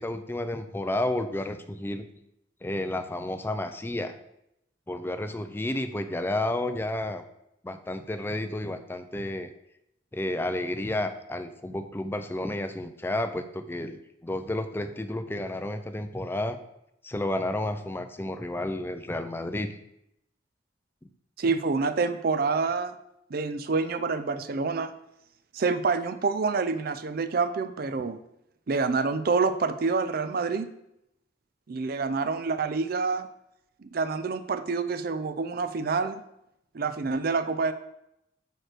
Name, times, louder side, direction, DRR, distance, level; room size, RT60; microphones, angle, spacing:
voice 1, 0.0-2.1 2.6-4.1 4.9-7.2 7.6-9.5 10.1-16.6 17.0-19.7, left 1 dB, 10° left, 8 dB, 0.4 m, -31 dB
voice 2, 21.4-22.9 23.3-24.9 25.5-28.2 28.7-30.7 31.7-33.3 33.8-36.2 36.7-37.7, right 4 dB, 55° right, 10 dB, 0.5 m, -27 dB
4.8 x 4.6 x 4.5 m, 0.81 s
head